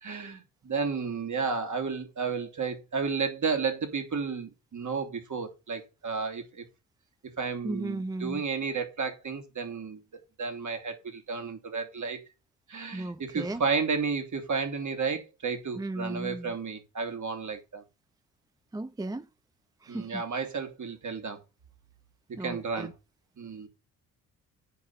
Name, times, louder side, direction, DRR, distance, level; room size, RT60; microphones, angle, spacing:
voice 1, 0.0-6.6 7.4-10.0 10.4-12.2 12.7-17.8 19.9-21.4 22.4-22.9 23.4-23.7, right 5 dB, 45° right, 3.1 m, -32 dB
voice 2, 7.6-8.4 12.9-13.6 15.7-16.5 18.7-19.3 19.8-20.2 22.4-22.9, right 2 dB, 10° right, 0.5 m, -35 dB
8.5 x 5.6 x 6.9 m
hypercardioid pair, 50°, 42 cm